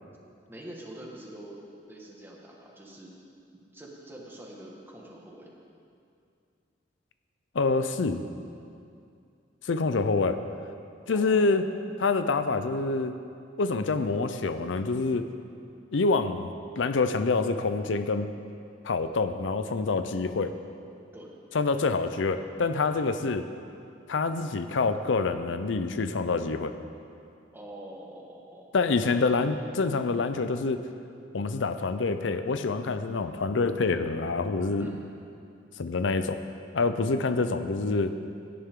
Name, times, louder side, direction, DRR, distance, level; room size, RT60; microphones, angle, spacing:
voice 1, 0.5-1.6 1.9-3.2 3.5-5.6 11.0-11.6 21.1-21.3 22.9-23.1 27.5-28.7 29.0-29.4 34.8-35.2, right 1 dB, 10° right, -3 dB, 1.7 m, -45 dB
voice 2, 7.5-8.2 9.7-10.4 11.1-11.7 12.0-13.2 13.6-15.3 15.9-16.5 16.8-18.3 18.8-20.6 21.5-23.4 24.1-26.8 28.7-30.8 31.3-34.9 35.8-36.4 36.7-38.1, left 3 dB, 85° left, 10 dB, 0.6 m, -26 dB
17.0 x 10.5 x 3.7 m, 2.5 s
head